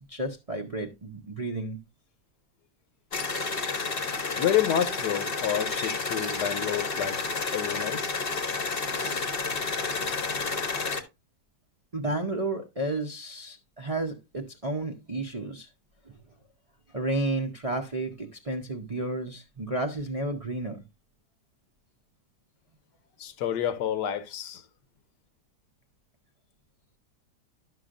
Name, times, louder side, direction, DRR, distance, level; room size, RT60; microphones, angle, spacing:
voice 1, 0.1-1.8 8.8-9.3 11.9-15.7 16.1-16.2 16.9-20.8, right 2 dB, 40° right, 0.5 m, -32 dB
sound 1, 3.1-11.0, left 4 dB, 40° left, 0.9 m, -30 dB
voice 2, 4.4-7.2 7.5-8.2 23.2-24.6, left 10 dB, 75° left, 1.3 m, -29 dB
11.5 x 6.2 x 2.5 m
omnidirectional pair, 1.8 m